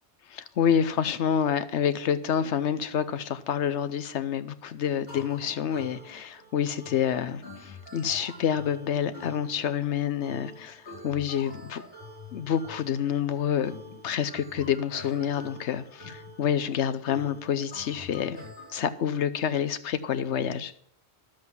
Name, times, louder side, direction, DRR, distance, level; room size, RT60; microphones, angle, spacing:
voice 1, 0.3-11.8 12.3-13.7 14.0-18.5 18.7-20.7, left 8 dB, 85° left, 1.0 m, -28 dB
sound 1, 5.1-18.8, left 1 dB, 55° left, 4.6 m, -46 dB
11.5 x 7.7 x 5.9 m
omnidirectional pair, 1.2 m